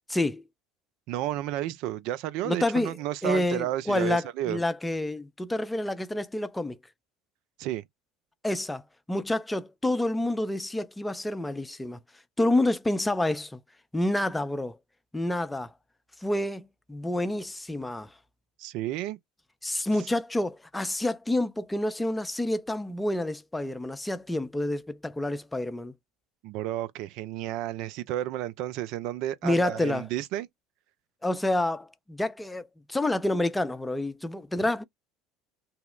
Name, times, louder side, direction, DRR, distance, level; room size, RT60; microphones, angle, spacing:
voice 1, 0.1-0.4 2.4-3.0 3.2-6.8 8.4-8.8 9.1-12.0 12.4-13.6 13.9-14.8 15.1-15.7 16.2-18.1 19.6-25.9 29.4-30.1 31.2-34.8, left 1 dB, 10° left, 0.4 m, -28 dB
voice 2, 1.1-4.6 7.6-7.8 18.6-19.2 26.4-30.5, right 13 dB, 60° right, 0.4 m, -32 dB
2.8 x 2.0 x 3.7 m
hypercardioid pair, 75°, 0 cm